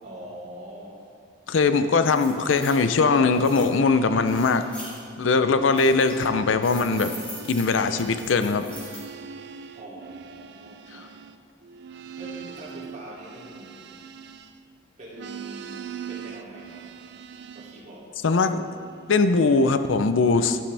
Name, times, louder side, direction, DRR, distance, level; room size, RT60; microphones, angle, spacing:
voice 1, 0.0-1.1 9.7-11.1 12.2-13.8 15.0-16.9 17.5-18.1, right 1 dB, 40° right, -6 dB, 2.8 m, -43 dB
voice 2, 1.5-4.6 5.2-7.1 7.5-8.6 10.9-11.0 18.2-18.6 19.1-20.6, left 4 dB, 85° left, 10 dB, 0.5 m, -21 dB
sound 1, 1.7-1.8 2.1-2.8 3.3-3.7 4.3-5.0 5.5-6.3 6.6-9.1, equal, 5° left, 2.5 m, -42 dB
sound 2, 2.2-5.0 5.3-14.8 15.1-17.9 18.5-19.8, right 6 dB, 65° right, 0.5 m, -42 dB
11.5 x 10.5 x 3.4 m, 2.4 s
head